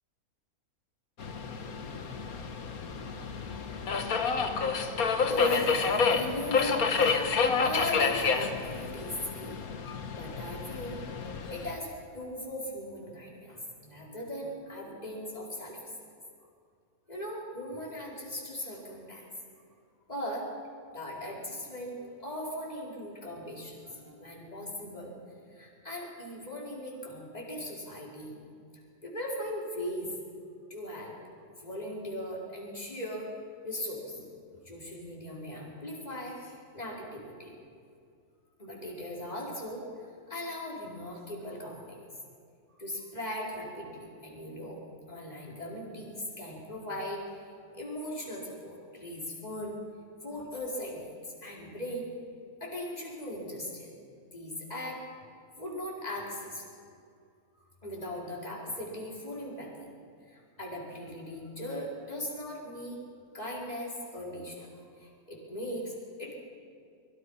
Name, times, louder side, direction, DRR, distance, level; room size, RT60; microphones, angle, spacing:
Subway metro underground, 1.2-11.7, left 5 dB, 75° left, 1.8 m, -29 dB
voice 1, 5.3-9.5 10.1-11.0 11.5-11.9 12.1-15.9 17.1-19.2 20.1-20.5 20.9-25.1 25.5-28.4 29.0-30.1 30.7-31.1 31.6-33.3 33.6-34.2 34.6-37.5 38.6-39.8 40.3-42.0 42.8-44.8 45.1-49.8 50.2-52.1 52.6-53.9 54.3-55.0 55.6-56.6 57.8-59.9 60.3-63.0 63.3-64.7 65.0-65.9 66.2-66.3, left 1 dB, 25° left, -3 dB, 4.8 m, -39 dB
25.5 x 23.0 x 5.7 m, 2.4 s
omnidirectional pair, 1.5 m